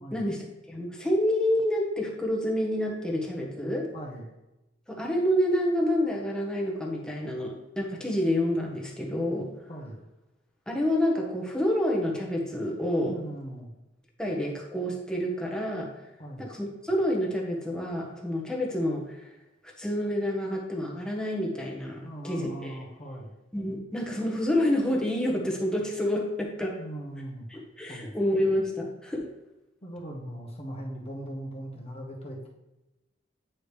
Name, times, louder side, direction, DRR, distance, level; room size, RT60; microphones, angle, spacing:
voice 1, 0.1-3.9 4.9-9.5 10.7-13.2 14.2-15.9 16.4-19.0 19.8-22.7 23.5-26.8 27.5-29.3, left 1 dB, 5° left, -1 dB, 1.2 m, -28 dB
voice 2, 3.9-4.3 9.7-10.0 13.0-13.7 16.2-16.5 22.0-23.4 26.8-27.5 27.9-28.1 29.8-32.5, right 1 dB, 35° left, -2 dB, 1.2 m, -39 dB
8.6 x 4.9 x 3.3 m, 0.98 s
head